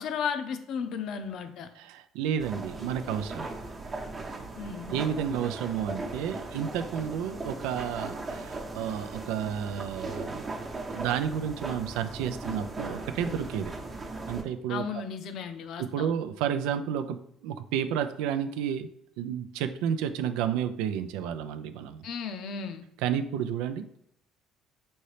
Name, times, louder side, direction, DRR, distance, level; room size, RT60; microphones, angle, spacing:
voice 1, 0.0-1.7 4.6-5.0 14.7-16.1 22.0-22.8, left 6 dB, 65° left, 8 dB, 0.6 m, -34 dB
voice 2, 1.8-3.5 4.9-10.5 10.9-13.7 14.3-14.8 15.8-18.9 19.2-22.1 23.0-23.8, right 8 dB, 85° right, 10 dB, 0.3 m, -31 dB
sound 1, 2.4-14.4, right 2 dB, 30° right, 0.8 m, -38 dB
5.3 x 2.8 x 3.2 m, 0.72 s
cardioid pair, 100°, 0 cm